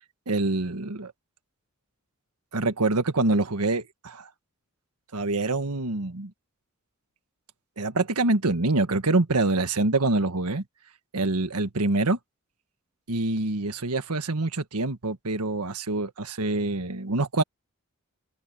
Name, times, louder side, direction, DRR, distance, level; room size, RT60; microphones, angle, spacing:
voice 1, 0.3-1.1 2.5-4.3 5.1-6.3 7.8-10.6 11.1-12.2 13.1-17.4, right 2 dB, 90° right, 1.5 m, -25 dB
head